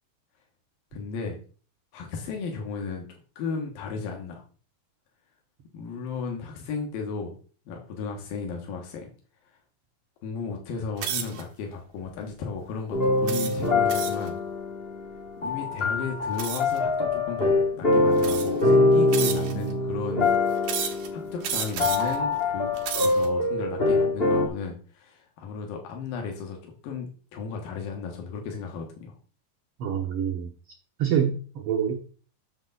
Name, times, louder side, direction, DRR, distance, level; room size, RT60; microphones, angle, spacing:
voice 1, 0.9-1.4 1.9-3.1 3.4-4.4 5.7-7.4 7.7-9.1 10.2-14.4 15.4-20.3 21.1-22.7 23.0-29.1, left 5 dB, 80° left, 1 dB, 3.2 m, -34 dB
sound 1, 11.0-11.4 12.1-12.3 13.3-14.3 16.4-16.8 17.6-17.7 18.2-18.7 19.1-19.7 20.6-21.1 21.4-22.2 22.7-23.3, right 8 dB, 75° right, 2.7 m, -32 dB
sound 2, 12.9-24.5, left 2 dB, 40° left, 0.8 m, -24 dB
voice 2, 29.8-30.5 31.0-32.0, right 8 dB, 60° right, 1 dB, 1.5 m, -26 dB
8.0 x 6.8 x 4.0 m, 0.39 s
omnidirectional pair, 4.0 m